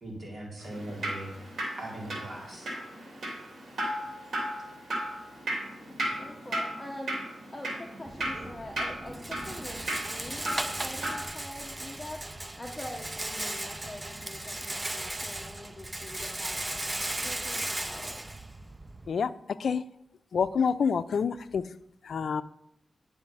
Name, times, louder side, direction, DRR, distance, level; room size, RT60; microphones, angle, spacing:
voice 1, 0.0-1.3 1.8-2.7, right 1 dB, 50° right, -3 dB, 2.9 m, -40 dB
Drip, 0.6-11.2, right 1 dB, 80° right, 2.6 m, -36 dB
voice 2, 6.2-7.2 7.5-12.2 12.6-16.6 17.2-18.1, left 1 dB, 15° left, 0 dB, 1.0 m, -44 dB
Rattle, 8.1-19.1, right 1 dB, 20° right, 0.5 m, -36 dB
voice 3, 20.3-21.6 22.1-22.4, left 6 dB, 75° left, 13 dB, 0.5 m, -27 dB
10.5 x 5.9 x 5.4 m, 0.78 s
wide cardioid pair, 105°, 0 cm